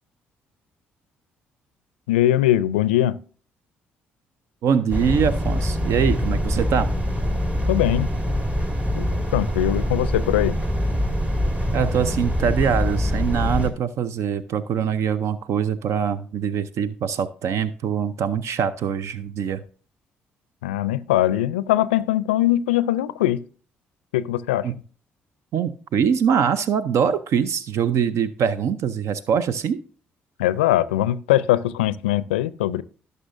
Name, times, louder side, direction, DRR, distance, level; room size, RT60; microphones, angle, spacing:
voice 1, 2.1-3.2 7.7-8.1 9.0-9.1 9.3-10.6 20.6-23.4 24.1-24.7 30.4-32.8, left 13 dB, 80° left, 17 dB, 0.4 m, -21 dB
voice 2, 4.6-6.9 11.7-19.6 24.6-24.7 25.5-29.8, right 7 dB, 60° right, 15 dB, 0.6 m, -23 dB
sound 1, 4.9-13.7, equal, 25° right, 2.1 m, -24 dB
17.5 x 6.7 x 2.6 m, 0.41 s
hypercardioid pair, 45°, 6 cm